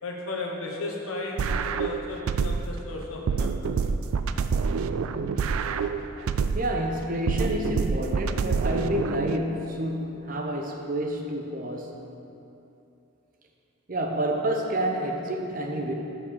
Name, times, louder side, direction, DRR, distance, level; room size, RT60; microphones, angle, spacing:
voice 1, 0.0-3.7, left 2 dB, 85° left, 0 dB, 1.2 m, -35 dB
sound 1, 1.4-2.8 3.3-6.8 7.3-9.4, right 5 dB, 90° right, 0.3 m, -27 dB
voice 2, 6.5-12.1 13.9-15.9, right 1 dB, 40° right, 2 dB, 0.7 m, -29 dB
6.2 x 6.0 x 6.7 m, 2.8 s
head